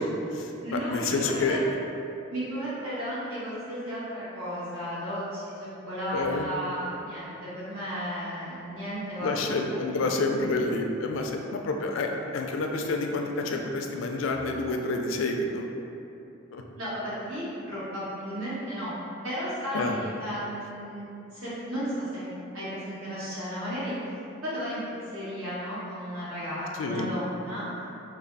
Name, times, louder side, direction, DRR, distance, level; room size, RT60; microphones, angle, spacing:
voice 1, 0.0-1.6 6.1-6.5 9.2-15.7 16.5-16.6 19.7-20.0 26.8-27.1, left 3 dB, 65° left, 3 dB, 0.3 m, -29 dB
voice 2, 0.6-1.6 2.3-9.9 12.0-12.1 16.8-18.9 19.2-23.9 24.4-24.8 25.1-27.7, equal, 85° right, -10 dB, 1.4 m, -34 dB
3.3 x 2.3 x 3.9 m, 2.8 s
head